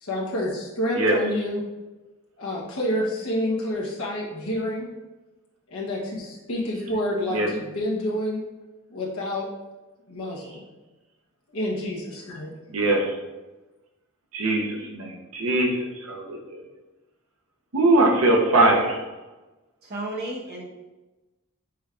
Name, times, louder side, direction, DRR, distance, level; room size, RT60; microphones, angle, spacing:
voice 1, 0.0-1.6 2.4-4.9 5.7-8.4 8.9-9.5 10.1-10.6 11.5-12.5, left 1 dB, 70° left, -4 dB, 1.0 m, -28 dB
voice 2, 12.7-13.1 14.3-16.6 17.7-19.0, right 2 dB, 75° right, 1 dB, 0.9 m, -21 dB
voice 3, 19.8-20.6, right 1 dB, 45° right, -2 dB, 1.0 m, -32 dB
6.0 x 3.4 x 2.4 m, 1.1 s
head